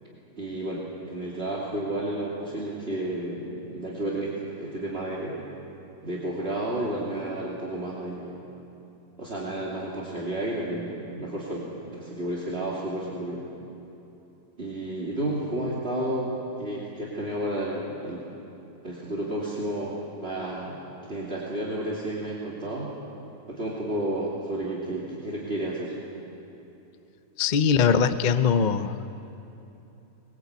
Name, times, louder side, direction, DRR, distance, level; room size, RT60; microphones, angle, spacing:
voice 1, 0.4-5.5 6.0-8.4 9.2-13.5 14.6-18.2 18.8-20.8 21.0-22.9 23.5-26.0, right 1 dB, 35° right, -6 dB, 3.1 m, -31 dB
voice 2, 27.4-29.1, left 6 dB, 45° left, 10 dB, 0.6 m, -22 dB
23.0 x 21.5 x 8.2 m, 3.0 s
omnidirectional pair, 1.7 m